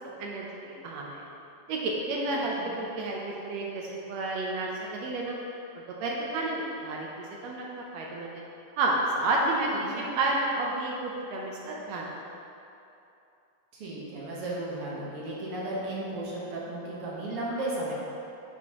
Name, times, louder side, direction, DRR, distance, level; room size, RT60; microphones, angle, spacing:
voice 1, 0.2-1.2 1.7-5.3 6.0-8.4 8.8-12.1, right 2 dB, 80° right, -2 dB, 1.6 m, -31 dB
voice 2, 9.7-10.1 13.7-17.9, right 1 dB, 60° right, -6 dB, 1.6 m, -34 dB
8.5 x 7.7 x 3.0 m, 2.8 s
omnidirectional pair, 3.9 m